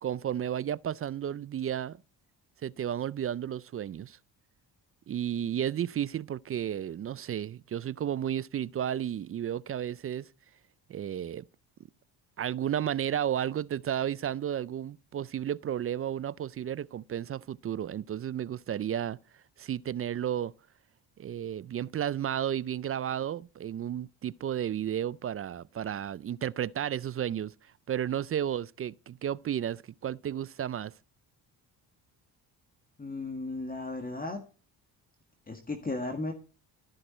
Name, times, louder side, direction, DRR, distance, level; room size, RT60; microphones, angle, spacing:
voice 1, 0.0-2.0 2.6-4.2 5.1-10.3 10.9-11.5 12.4-19.2 19.6-20.5 21.2-27.5 27.9-30.9, right 10 dB, 35° right, 0.4 m, -33 dB
voice 2, 33.0-34.4 35.5-36.3, left 2 dB, 20° left, 1.8 m, -35 dB
13.5 x 6.5 x 4.3 m
cardioid pair, 90°, 43 cm